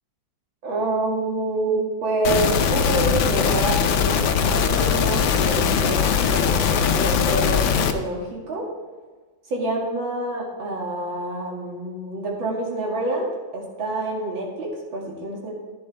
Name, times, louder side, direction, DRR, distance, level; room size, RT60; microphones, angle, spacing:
voice 1, 0.6-8.7 9.5-15.6, right 2 dB, 80° right, -2 dB, 3.1 m, -27 dB
sound 1, 2.2-7.9, left 7 dB, 80° left, 1.5 m, -20 dB
11.0 x 10.5 x 3.4 m, 1.4 s
omnidirectional pair, 2.1 m